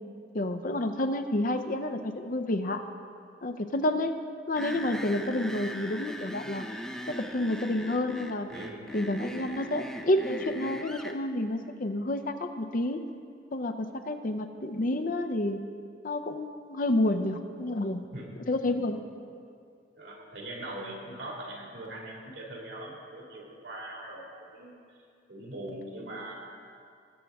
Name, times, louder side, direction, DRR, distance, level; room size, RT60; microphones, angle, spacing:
voice 1, 0.3-2.8 3.4-4.2 4.5-6.6 7.1-8.5 8.9-13.0 13.5-15.6 16.0-18.1 18.5-19.0, left 1 dB, 45° left, 8 dB, 0.5 m, -29 dB
sound 1, 4.6-11.2, equal, 5° left, 0.5 m, -39 dB
voice 2, 8.5-8.8 18.1-18.4 18.7-18.9 20.0-24.2 24.5-25.0 25.3-26.3, right 1 dB, 70° right, -2 dB, 2.2 m, -41 dB
20.0 x 7.3 x 3.5 m, 2.3 s
head